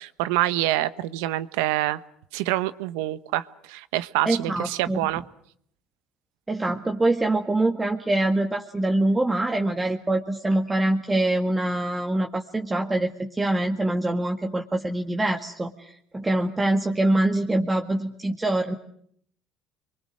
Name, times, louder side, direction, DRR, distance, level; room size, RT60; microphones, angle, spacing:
voice 1, 0.0-2.0 2.3-5.2, right 16 dB, 85° right, 15 dB, 1.1 m, -26 dB
voice 2, 4.3-5.0 6.5-18.8, right 1 dB, 15° right, 3 dB, 1.9 m, -24 dB
29.0 x 23.5 x 6.4 m, 0.67 s
supercardioid pair, 90°, 0 cm